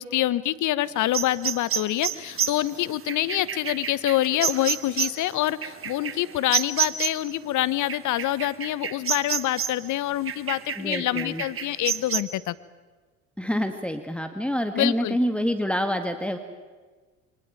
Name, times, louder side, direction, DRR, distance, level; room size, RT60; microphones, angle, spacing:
voice 1, 0.0-12.5 14.7-15.2, left 14 dB, 55° left, 18 dB, 1.1 m, -26 dB
sound 1, 1.1-7.3 7.9-9.9 10.3-12.2, right 8 dB, 35° right, 1.5 m, -29 dB
voice 2, 10.8-11.4 13.4-16.4, equal, 5° left, 7 dB, 1.9 m, -27 dB
24.0 x 19.5 x 9.1 m, 1.4 s
hypercardioid pair, 65°, 36 cm